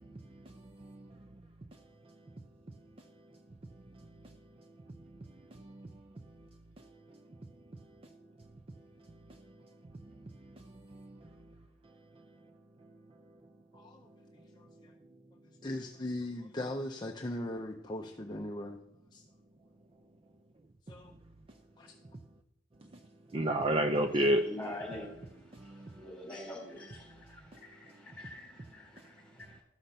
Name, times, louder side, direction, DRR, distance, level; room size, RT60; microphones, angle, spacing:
voice 1, 0.0-12.5 12.8-13.4 13.7-15.2 20.9-21.6 22.0-22.2 22.8-24.5 25.0-26.2 26.8-28.2 28.7-29.1 29.4-29.6, right 1 dB, 30° right, 0.4 m, -39 dB
voice 2, 15.6-18.8 20.9-21.0, left 1 dB, 20° left, 0.6 m, -38 dB
voice 3, 24.5-25.1 26.0-27.0 28.2-28.5 28.7-28.8, left 1 dB, 5° left, 3.6 m, -42 dB
13.0 x 5.7 x 6.6 m
head